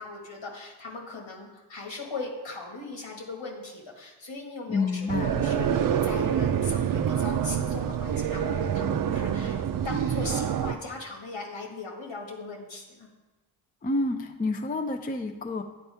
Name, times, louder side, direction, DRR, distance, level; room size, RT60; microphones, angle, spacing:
voice 1, 0.0-9.6 9.8-13.1, left 3 dB, 65° left, 0 dB, 1.8 m, -38 dB
voice 2, 4.7-5.4 13.8-15.6, left 3 dB, 20° left, 6 dB, 0.4 m, -29 dB
sound 1, 5.1-10.7, right 8 dB, 45° right, 0.5 m, -26 dB
10.5 x 4.2 x 3.4 m, 1.2 s
cardioid pair, 55°, 49 cm